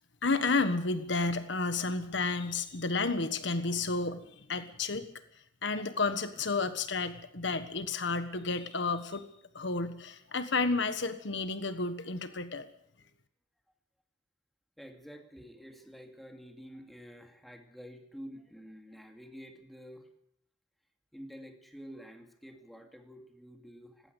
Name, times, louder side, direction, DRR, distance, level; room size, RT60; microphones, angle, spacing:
voice 1, 0.2-5.1 5.6-9.3 9.5-12.7, left 3 dB, 65° left, 10 dB, 1.4 m, -31 dB
voice 2, 14.8-20.1 21.1-24.1, equal, ahead, 4 dB, 2.6 m, -49 dB
19.0 x 17.5 x 8.3 m, 0.72 s
head